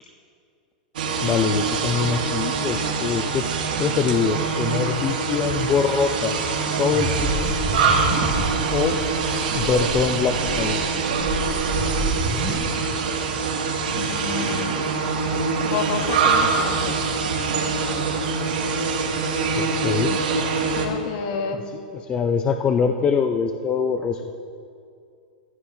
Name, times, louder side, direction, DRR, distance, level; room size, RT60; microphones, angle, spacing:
sound 1, 1.0-20.9, right 4 dB, 80° right, 2.2 m, -24 dB
voice 1, 1.2-3.4 3.8-6.3 6.8-7.5 8.7-9.0 9.5-10.8 19.6-20.2 22.0-24.2, left 6 dB, 20° left, 5 dB, 0.5 m, -23 dB
sound 2, 6.9-8.8 9.1-9.2 9.5-10.0 10.4-12.6, right 1 dB, ahead, 2.2 m, -28 dB
voice 2, 13.9-14.7 15.6-17.0 20.7-21.6, left 6 dB, 50° left, 5 dB, 1.5 m, -29 dB
18.5 x 14.5 x 2.8 m, 2.4 s
supercardioid pair, 145°, 5 cm